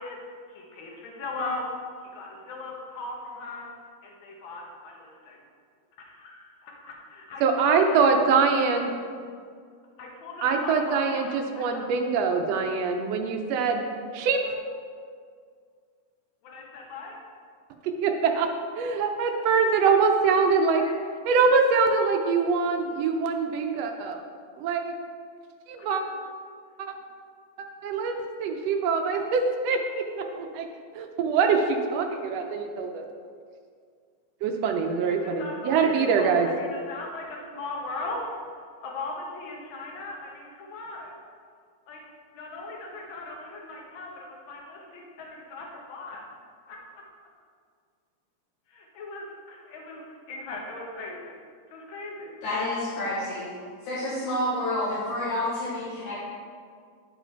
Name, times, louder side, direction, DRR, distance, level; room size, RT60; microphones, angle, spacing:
voice 1, 0.0-1.7 2.0-3.7 4.0-5.4 6.0-8.3 8.7-8.8 10.0-11.9 14.4-14.6 16.4-17.2 20.2-21.0 25.8-26.0 35.1-41.2 41.9-42.0 42.3-46.2 46.7-47.0 48.7-51.4 51.7-52.3, left 2 dB, 55° left, -1 dB, 1.6 m, -39 dB
voice 2, 7.4-8.9 10.4-13.8 14.1-14.4 18.0-18.5 18.8-20.8 21.3-24.2 24.6-24.9 25.7-26.0 26.8-26.9 27.8-30.6 31.0-33.0 34.4-36.5, right 5 dB, 75° right, 4 dB, 1.6 m, -24 dB
voice 3, 52.4-53.6 53.8-56.2, left 1 dB, 80° left, -8 dB, 2.7 m, -29 dB
10.0 x 4.7 x 4.5 m, 2.1 s
omnidirectional pair, 3.3 m